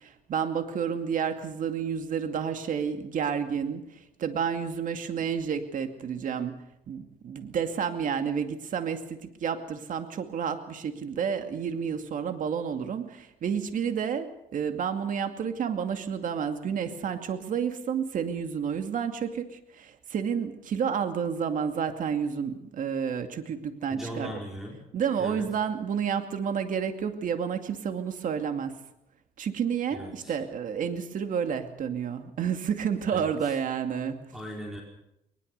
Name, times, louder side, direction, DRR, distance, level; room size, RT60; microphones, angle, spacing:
voice 1, 0.0-6.5 6.9-24.4 24.9-28.7 29.4-34.2, right 7 dB, 50° right, 7 dB, 2.4 m, -30 dB
voice 2, 23.9-24.8 25.2-25.5 29.9-30.3 33.1-33.5 34.3-34.8, equal, ahead, 0 dB, 4.7 m, -39 dB
21.5 x 20.5 x 6.7 m, 0.83 s
cardioid pair, 110°, 17 cm